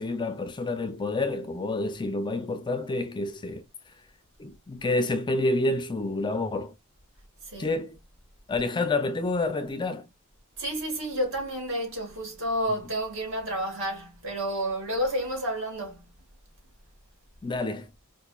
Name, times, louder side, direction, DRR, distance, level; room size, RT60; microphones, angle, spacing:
voice 1, 0.0-3.6 4.4-6.7 7.6-8.0 8.5-10.1 17.4-17.9, left 2 dB, 20° left, 0.4 m, -28 dB
voice 2, 7.4-7.8 10.6-16.0, equal, 60° right, 1.8 m, -30 dB
4.8 x 2.5 x 2.3 m
head